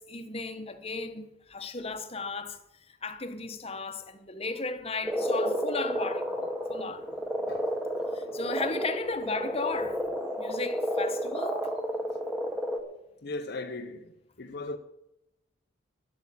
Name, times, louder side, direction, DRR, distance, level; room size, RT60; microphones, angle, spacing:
voice 1, 0.0-7.1 8.1-11.7, left 3 dB, 30° left, 1.1 m, -35 dB
Frog, 5.0-12.8, equal, 5° right, 1.3 m, -31 dB
voice 2, 13.2-14.8, left 2 dB, 50° left, 0.7 m, -38 dB
11.5 x 8.4 x 8.5 m
head